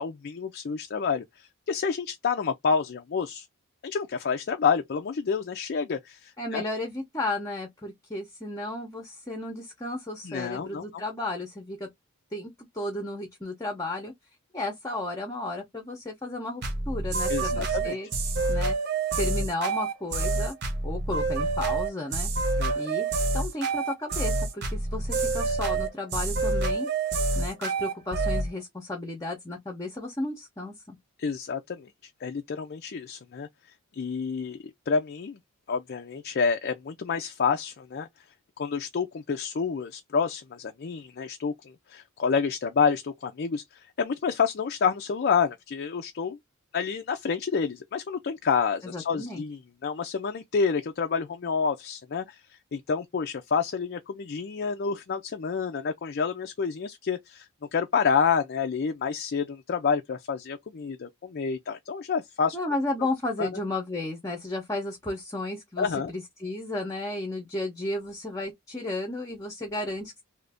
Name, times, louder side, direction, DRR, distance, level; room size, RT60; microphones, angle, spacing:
voice 1, 0.0-3.5 3.8-6.6 10.2-11.0 17.3-18.0 22.6-22.8 31.2-31.9 32.2-33.5 33.9-35.4 35.7-38.1 38.6-46.4 46.7-62.6 63.4-63.5 65.8-66.1, left 5 dB, 50° left, 0.4 m, -28 dB
voice 2, 6.4-11.9 12.3-14.1 14.5-18.1 18.5-18.8 19.2-20.6 20.8-22.3 22.8-23.1 23.3-26.9 27.4-31.0 48.8-49.4 62.5-70.2, left 2 dB, 15° left, 0.7 m, -33 dB
sound 1, 16.6-28.5, right 3 dB, 50° right, 1.0 m, -27 dB
2.8 x 2.6 x 3.4 m
head